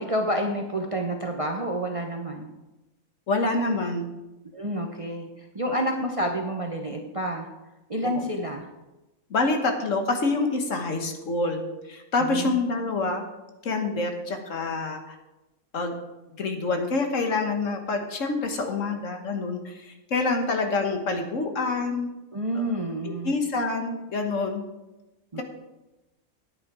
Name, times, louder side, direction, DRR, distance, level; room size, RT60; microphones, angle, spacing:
voice 1, 0.0-2.5 4.5-7.5 7.9-8.6 12.2-12.6 22.3-23.3 25.3-25.4, right 1 dB, 30° right, 2 dB, 0.7 m, -29 dB
voice 2, 3.3-4.1 9.3-13.2 13.6-15.1 15.7-16.0 16.3-22.1 22.5-22.6 23.0-24.6, left 3 dB, 60° left, 5 dB, 1.5 m, -27 dB
10.5 x 9.0 x 4.8 m, 1.0 s
omnidirectional pair, 1.5 m